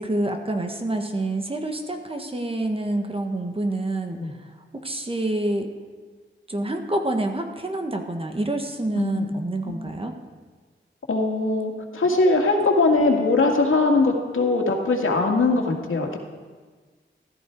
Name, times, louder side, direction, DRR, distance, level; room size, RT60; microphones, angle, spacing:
voice 1, 0.0-4.2 4.8-5.7 6.5-10.1, right 1 dB, 30° right, 4 dB, 1.4 m, -27 dB
voice 2, 9.0-9.3 9.7-9.9 11.1-16.2, left 3 dB, 85° left, 1 dB, 2.1 m, -21 dB
15.5 x 13.5 x 4.7 m, 1.4 s
wide cardioid pair, 115°, 20 cm